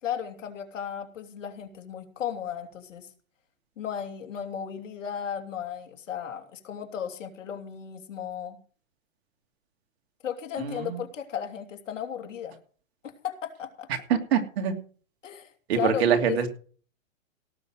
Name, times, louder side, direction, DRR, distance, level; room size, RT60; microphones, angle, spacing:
voice 1, 0.0-3.1 3.8-8.6 10.2-12.6 13.2-13.9 15.2-15.5 15.8-16.5, left 8 dB, 70° left, 5 dB, 3.1 m, -35 dB
voice 2, 10.6-11.0 14.1-14.7 15.7-16.5, right 8 dB, 50° right, 5 dB, 2.9 m, -24 dB
17.5 x 6.9 x 6.5 m, 0.42 s
hypercardioid pair, 155°, 40 cm